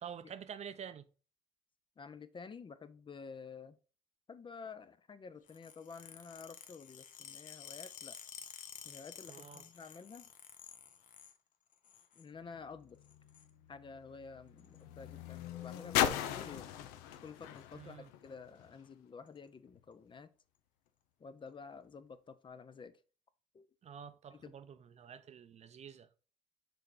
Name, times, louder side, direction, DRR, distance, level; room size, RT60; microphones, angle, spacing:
voice 1, 0.0-1.0 9.3-9.6 17.7-18.1 23.8-26.1, right 8 dB, 45° right, 0.6 m, -48 dB
voice 2, 2.0-3.8 4.3-8.2 8.8-10.3 12.1-13.0 13.7-16.7 17.2-20.3 21.2-23.0 23.5-23.7 24.3-24.5, left 5 dB, 30° left, 0.6 m, -51 dB
sound 1, 5.5-11.4 11.7-12.3 13.0-13.5 14.6-14.8 15.8-16.1 16.3-16.5 16.7-16.8 17.1-17.6 18.2-18.3 19.3-19.4, left 8 dB, 55° left, 0.9 m, -52 dB
sound 2, 12.4-18.9 19.7-19.8, left 10 dB, 85° left, 0.6 m, -39 dB
6.0 x 3.3 x 4.8 m
supercardioid pair, 70°, 16 cm